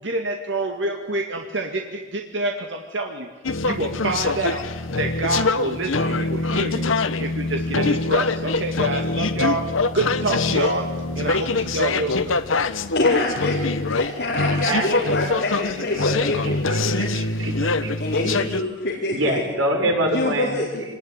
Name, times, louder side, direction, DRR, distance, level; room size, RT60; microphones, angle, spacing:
voice 1, 0.0-3.3 3.6-4.7 5.0-6.9 7.2-10.9 11.2-12.4, right 2 dB, 65° right, 3 dB, 2.1 m, -27 dB
sound 1, 3.4-18.6, left 3 dB, 85° left, 1.2 m, -24 dB
voice 2, 12.9-17.1 18.0-19.5 20.1-20.8, left 2 dB, 60° left, -5 dB, 4.5 m, -26 dB
voice 3, 14.5-14.9 16.4-17.9 18.4-18.6 19.1-20.5, right 1 dB, 90° right, 1 dB, 6.6 m, -25 dB
26.0 x 20.0 x 9.9 m, 1.2 s
head